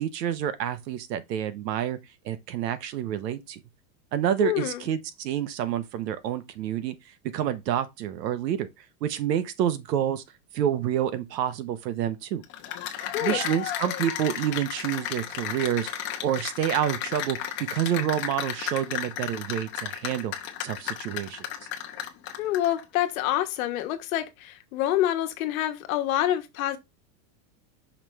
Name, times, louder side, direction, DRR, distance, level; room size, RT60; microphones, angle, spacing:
voice 1, 0.0-2.0 2.2-3.6 4.1-6.9 7.3-8.7 9.0-10.2 10.5-12.4 13.2-17.4 17.7-20.3 20.6-21.4, right 10 dB, 80° right, 1.2 m, -28 dB
voice 2, 4.4-4.9 13.1-13.4 22.4-26.8, left 13 dB, 55° left, 1.3 m, -27 dB
Cheering / Applause, 12.4-22.8, left 10 dB, 25° left, 0.8 m, -33 dB
5.8 x 3.4 x 5.6 m
supercardioid pair, 170°, 49 cm